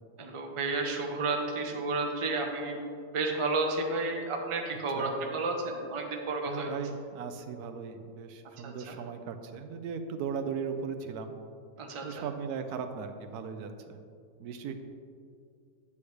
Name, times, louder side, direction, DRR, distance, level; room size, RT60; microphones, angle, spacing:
voice 1, 0.2-2.8 3.1-6.7 8.6-9.0 11.8-12.2, right 3 dB, 30° right, 1 dB, 0.7 m, -32 dB
voice 2, 6.5-11.3 12.0-14.0 14.4-14.7, right 6 dB, 80° right, 7 dB, 1.1 m, -37 dB
8.5 x 8.4 x 3.3 m, 2.4 s
omnidirectional pair, 1.6 m